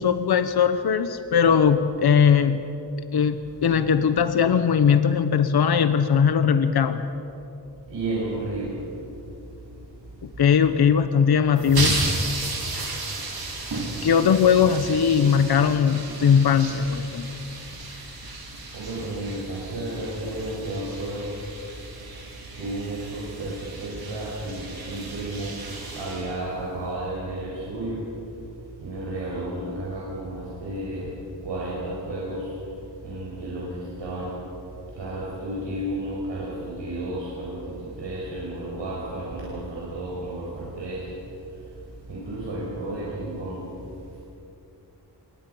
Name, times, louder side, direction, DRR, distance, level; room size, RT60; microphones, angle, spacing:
voice 1, 0.0-2.6 3.1-7.0 10.2-12.0 14.0-17.2, left 7 dB, 60° left, 10 dB, 0.9 m, -20 dB
voice 2, 7.9-8.7 18.7-21.3 22.6-25.6 25.9-28.0 28.8-31.1 31.4-32.5 33.0-33.7 34.0-34.3 35.0-41.1 42.1-43.6, right 1 dB, 85° right, -6 dB, 5.6 m, -32 dB
sound 1, 11.5-26.9, right 2 dB, 55° right, 3.8 m, -34 dB
27.0 x 22.5 x 5.6 m, 2.8 s
wide cardioid pair, 165°, 43 cm